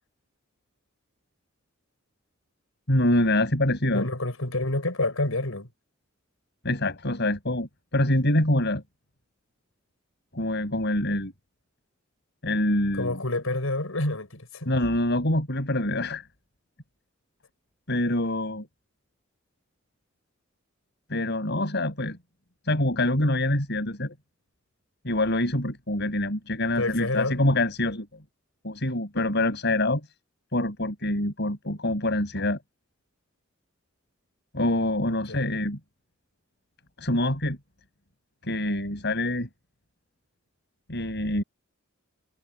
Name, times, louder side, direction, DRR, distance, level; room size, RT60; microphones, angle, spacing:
voice 1, 2.9-4.1 6.6-8.8 10.3-11.3 12.4-13.2 14.7-16.2 17.9-18.7 21.1-22.2 22.6-24.1 25.0-28.1 28.6-30.0 30.5-32.6 34.5-35.8 37.0-37.6 38.5-39.5 40.9-41.4, left 1 dB, 55° left, 7.7 m, -25 dB
voice 2, 3.9-5.7 12.9-14.7 26.8-27.4 35.1-35.5, left 2 dB, 90° left, 5.4 m, -28 dB
head